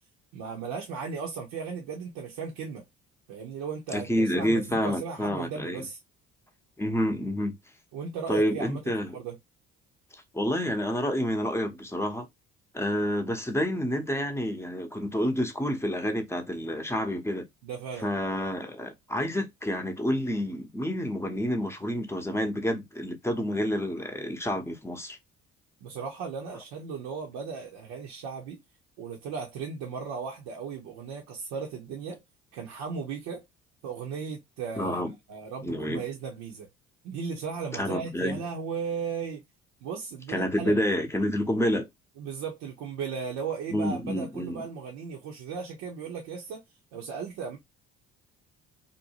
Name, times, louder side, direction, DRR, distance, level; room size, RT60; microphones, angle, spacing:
voice 1, 0.3-2.8 3.3-6.0 7.9-8.8 9.1-9.4 17.6-18.1 25.8-28.6 29.0-32.2 32.5-33.4 33.8-36.7 37.0-39.4 39.8-40.8 42.2-46.6 46.9-47.6, right 6 dB, 75° right, 0.8 m, -36 dB
voice 2, 3.9-5.9 6.8-7.5 8.3-9.2 10.1-12.3 12.7-17.5 18.0-25.2 34.8-35.1 35.6-36.0 37.7-38.4 40.3-41.9 43.7-44.7, equal, 10° left, 0.7 m, -29 dB
2.7 x 2.2 x 2.7 m
supercardioid pair, 65°, 33 cm